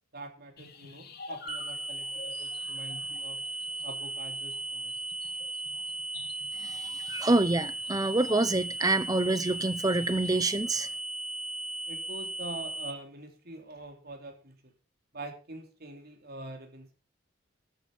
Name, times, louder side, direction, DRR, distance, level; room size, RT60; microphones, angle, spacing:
voice 1, 0.1-3.5 3.8-5.0 11.9-14.7 15.1-16.9, right 2 dB, 50° right, 3.4 m, -44 dB
sound 1, 0.6-10.6, left 3 dB, 50° left, 3.1 m, -50 dB
sound 2, 1.5-12.9, right 2 dB, 35° right, 2.5 m, -37 dB
voice 2, 6.6-10.9, right 2 dB, 20° right, 0.8 m, -27 dB
13.0 x 9.2 x 5.6 m
head